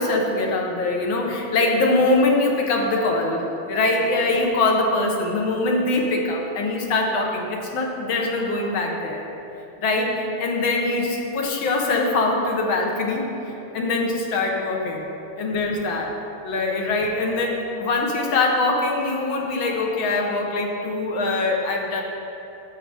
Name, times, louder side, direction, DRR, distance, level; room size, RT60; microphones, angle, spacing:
voice 1, 0.0-9.2 9.8-13.3 13.7-15.1 15.4-16.2 16.4-22.0, left 2 dB, 75° left, 0 dB, 1.8 m, -23 dB
12.0 x 7.3 x 3.4 m, 2.9 s
omnidirectional pair, 2.2 m